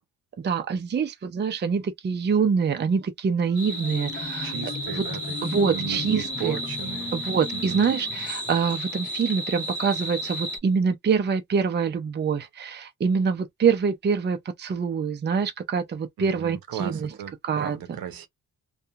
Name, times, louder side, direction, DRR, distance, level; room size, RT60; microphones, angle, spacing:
voice 1, 0.4-4.5 4.9-5.1 5.4-6.6 7.1-17.1 17.4-17.8, right 6 dB, 30° right, 0.5 m, -25 dB
Marimba xylophone, 3.5-9.0, left 3 dB, 25° left, 0.9 m, -38 dB
sound 1, 3.6-10.6, equal, 5° right, 1.4 m, -33 dB
voice 2, 4.4-7.1 7.5-7.9 16.2-18.3, right 9 dB, 70° right, 0.8 m, -36 dB
2.7 x 2.3 x 2.4 m
cardioid pair, 80°, 36 cm